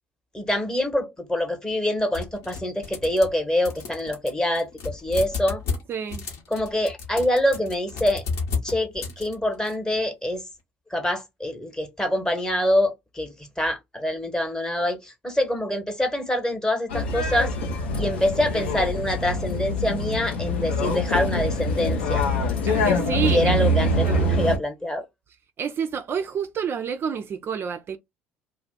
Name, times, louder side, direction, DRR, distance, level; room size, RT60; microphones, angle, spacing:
voice 1, 0.3-5.6 6.5-8.2 8.6-10.4 10.9-17.5 18.0-22.2 23.3-25.0, left 1 dB, 10° left, 0.9 m, -25 dB
sound 1, 2.1-3.4 3.7-9.7, left 4 dB, 65° left, 0.9 m, -33 dB
voice 2, 5.9-6.2 22.7-24.3 25.6-28.0, right 7 dB, 40° right, 0.4 m, -29 dB
sound 2, 16.9-24.6, left 1 dB, 85° left, 0.6 m, -24 dB
2.4 x 2.0 x 3.7 m
hypercardioid pair, 60°, 6 cm